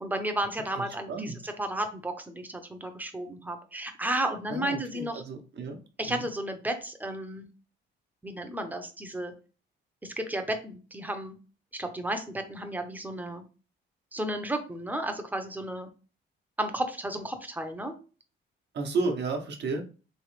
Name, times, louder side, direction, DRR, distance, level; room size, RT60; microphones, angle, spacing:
voice 1, 0.0-5.2 6.0-7.5 8.2-9.3 10.0-11.4 11.8-13.4 14.1-15.9 16.6-17.9, right 1 dB, 10° right, 6 dB, 0.7 m, -33 dB
voice 2, 0.8-1.4 4.5-5.8 6.0-6.2 18.7-19.8, right 3 dB, 60° right, 3 dB, 0.9 m, -32 dB
3.2 x 3.2 x 3.1 m, 0.35 s
cardioid pair, 90°, 20 cm